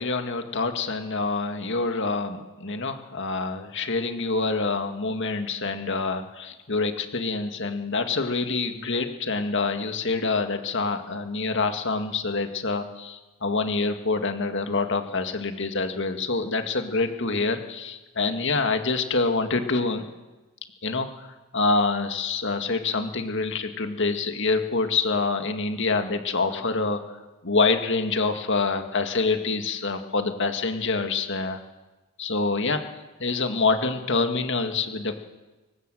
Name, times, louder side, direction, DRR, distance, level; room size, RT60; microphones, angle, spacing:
voice 1, 0.0-20.1 20.8-27.0 27.4-31.6 32.2-32.8 33.2-35.2, left 3 dB, 55° left, 6 dB, 2.0 m, -26 dB
25.5 x 15.5 x 7.9 m, 1.1 s
head